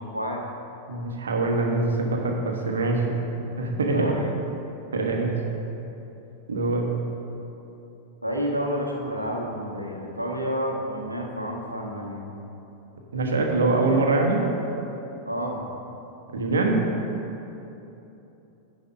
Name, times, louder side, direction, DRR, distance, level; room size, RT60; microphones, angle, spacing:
voice 1, 0.9-3.0 3.4-4.1 4.9-5.3 6.5-6.9 13.1-14.4 16.3-16.8, right 3 dB, 70° right, 1 dB, 1.3 m, -24 dB
voice 2, 3.9-4.3 8.2-12.2 15.3-15.6, equal, 85° right, -1 dB, 1.2 m, -29 dB
10.5 x 4.9 x 6.5 m, 3.0 s
figure-of-eight pair, 90°, 0 cm